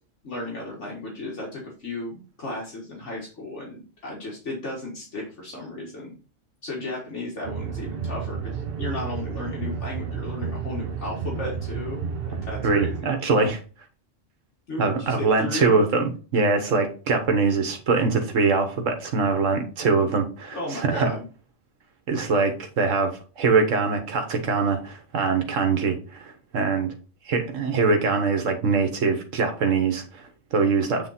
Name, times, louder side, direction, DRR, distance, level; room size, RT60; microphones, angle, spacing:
voice 1, 0.2-6.1 6.6-12.1 12.5-13.2 14.7-15.8 20.5-21.3, left 2 dB, 70° left, -3 dB, 2.0 m, -34 dB
sound 1, 7.4-13.0, right 6 dB, 55° right, 1.0 m, -31 dB
voice 2, 12.6-13.6 14.8-21.1 22.1-26.9 27.2-31.1, right 4 dB, 90° right, 5 dB, 1.4 m, -23 dB
8.5 x 3.7 x 4.1 m, 0.36 s
omnidirectional pair, 1.3 m